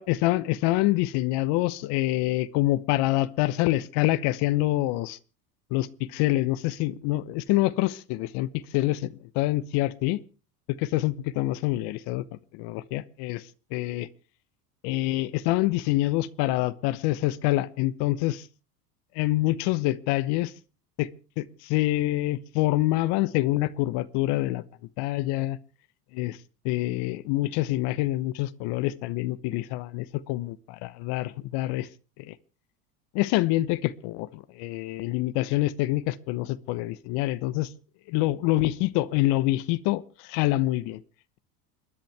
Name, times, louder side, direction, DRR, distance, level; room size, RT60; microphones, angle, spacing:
voice 1, 0.0-5.2 5.7-10.2 10.7-12.2 12.5-13.4 13.7-14.1 14.8-18.5 19.1-20.5 21.0-21.1 21.4-24.6 25.0-25.6 26.1-26.4 26.6-31.9 32.3-32.4 33.1-37.7 38.1-41.0, left 17 dB, 55° left, 16 dB, 1.0 m, -26 dB
29.0 x 10.5 x 3.4 m, 0.34 s
hypercardioid pair, 90°, 48 cm